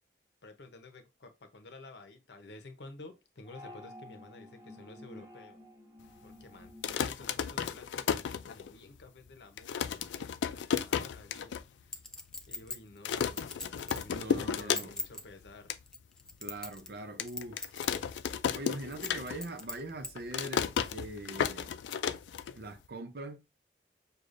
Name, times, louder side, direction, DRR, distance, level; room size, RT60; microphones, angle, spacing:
voice 1, 0.4-5.7 6.2-12.0 12.5-13.4 13.9-15.7, left 2 dB, 75° left, 0.8 m, -52 dB
sound 1, 3.4-8.1, left 1 dB, 20° right, 0.9 m, -52 dB
sound 2, 6.7-9.0 9.3-9.4 9.6-11.6 12.0-12.1 12.3-12.7 13.0-15.2 15.5-15.8 16.3-16.4 17.2-19.6 19.9-22.9, left 7 dB, 90° left, 0.3 m, -33 dB
Chink clink, 11.9-14.1 14.6-15.2 15.9-17.0 17.3-17.9 18.2-18.3 18.9-20.1 20.6-20.7, left 2 dB, 5° left, 0.4 m, -40 dB
voice 2, 14.1-14.9 16.4-17.7 18.5-21.7 22.5-23.4, right 1 dB, 60° right, 0.6 m, -42 dB
6.5 x 2.3 x 2.5 m
head